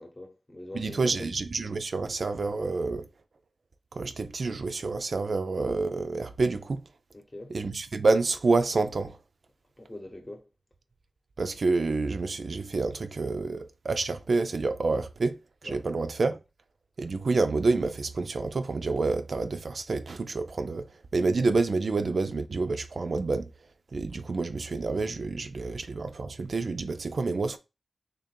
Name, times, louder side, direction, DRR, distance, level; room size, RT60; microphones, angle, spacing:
voice 1, 0.0-1.3 7.1-7.6 9.8-10.4 15.6-15.8, left 1 dB, 30° left, 0.9 m, -43 dB
voice 2, 0.7-3.0 4.0-6.8 7.5-9.2 11.4-16.4 17.0-20.9 21.1-23.5 23.9-27.6, right 3 dB, 60° right, 0.4 m, -28 dB
3.3 x 2.5 x 4.3 m
wide cardioid pair, 90°, 0 cm